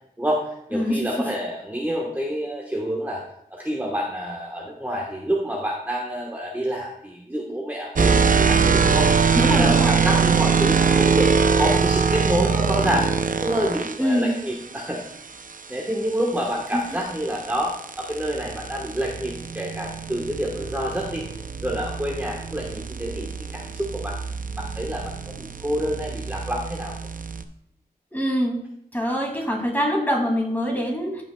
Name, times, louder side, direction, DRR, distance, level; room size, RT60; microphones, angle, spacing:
voice 1, 0.2-3.2 3.5-9.1 9.4-15.0 15.7-21.3 21.6-24.2 24.6-27.0, equal, 10° right, -3 dB, 1.2 m, -28 dB
voice 2, 0.7-1.3 9.3-10.0 14.0-14.3 16.7-17.0 28.1-28.6 28.9-31.2, equal, 10° left, -1 dB, 2.4 m, -24 dB
sound 1, 8.0-14.0 16.4-27.4, right 5 dB, 55° right, 0.5 m, -23 dB
15.0 x 5.7 x 2.2 m, 0.74 s
wide cardioid pair, 80°, 17 cm